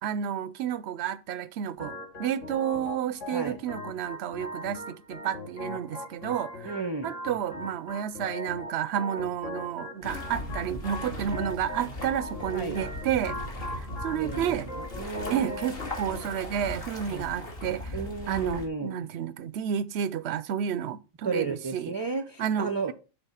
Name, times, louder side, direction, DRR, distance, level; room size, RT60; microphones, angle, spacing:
voice 1, 0.0-6.7 7.0-13.4 13.7-14.7 15.3-18.0 18.3-21.9 22.4-22.9, right 9 dB, 65° right, 0.7 m, -31 dB
Organ, 1.8-16.8, left 2 dB, 70° left, 2.1 m, -40 dB
voice 2, 6.6-7.1 12.5-12.8 14.1-14.4 14.7-15.6 17.1-17.3 17.9-18.9 21.2-22.9, right 4 dB, 30° right, 0.5 m, -33 dB
sound 1, 10.0-18.7, left 1 dB, 45° left, 1.8 m, -38 dB
7.1 x 3.9 x 5.6 m
omnidirectional pair, 1.3 m